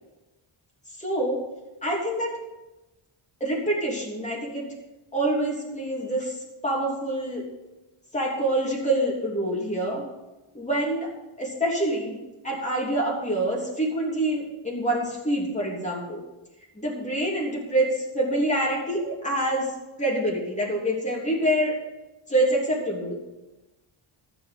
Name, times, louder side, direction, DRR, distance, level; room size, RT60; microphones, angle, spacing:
voice 1, 1.0-1.4 1.8-2.4 3.4-4.7 5.1-7.4 8.1-10.1 10.5-11.1 11.4-12.2 12.4-16.2 16.7-21.8 22.3-23.1, right 1 dB, 15° left, -3 dB, 3.3 m, -26 dB
14.5 x 5.8 x 8.0 m, 1.1 s
wide cardioid pair, 120°, 49 cm